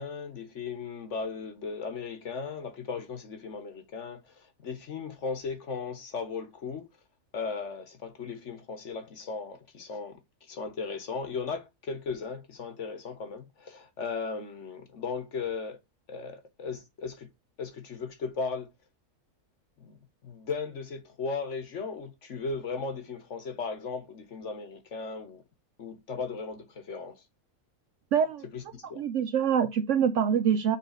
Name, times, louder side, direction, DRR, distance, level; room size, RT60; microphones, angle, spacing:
voice 1, 0.0-6.9 7.3-10.2 10.5-15.8 16.1-17.3 17.6-18.7 19.8-25.4 25.8-27.2 28.5-29.0, left 4 dB, 55° left, 1.3 m, -36 dB
voice 2, 28.1-28.4 29.0-30.8, right 8 dB, 65° right, 0.8 m, -25 dB
5.7 x 3.5 x 4.9 m
omnidirectional pair, 1.6 m